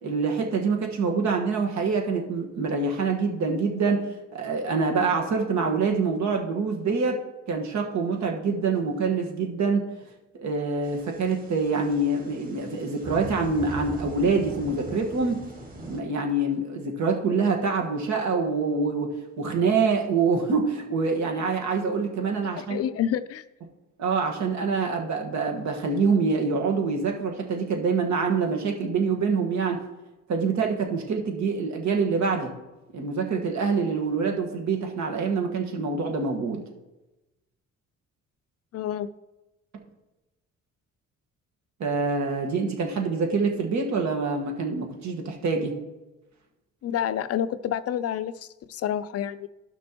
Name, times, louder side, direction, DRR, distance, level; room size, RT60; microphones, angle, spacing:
voice 1, 0.0-4.0 4.3-7.2 7.5-9.9 10.3-15.4 15.9-22.8 24.0-29.8 30.3-32.5 32.9-36.6 41.8-45.8, right 4 dB, 65° right, 2 dB, 1.5 m, -25 dB
sound 1, 10.8-16.0, right 2 dB, 30° right, 2.0 m, -40 dB
voice 2, 22.6-23.4 38.7-39.1 46.8-49.5, left 9 dB, 55° left, 14 dB, 0.4 m, -28 dB
12.0 x 6.1 x 3.0 m, 1.0 s
cardioid pair, 90°, 30 cm